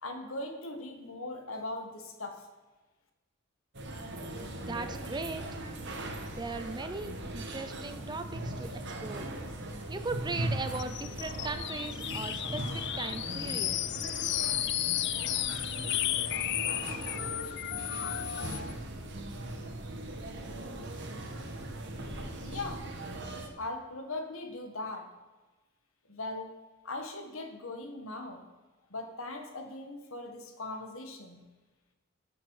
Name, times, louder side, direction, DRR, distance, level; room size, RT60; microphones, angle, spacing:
voice 1, 0.0-2.5 22.4-22.9 23.6-25.1 26.1-26.6 26.8-28.4 28.9-31.5, left 2 dB, 70° left, 5 dB, 1.6 m, -39 dB
sound 1, 3.7-23.5, right 1 dB, 55° right, 1.5 m, -39 dB
voice 2, 4.6-5.4 6.3-8.7 9.0-9.3 9.9-14.0, right 3 dB, 20° right, 9 dB, 0.5 m, -38 dB
sound 2, 10.7-18.7, left 13 dB, 55° left, 0.4 m, -33 dB
18.5 x 7.2 x 4.9 m, 1.2 s
head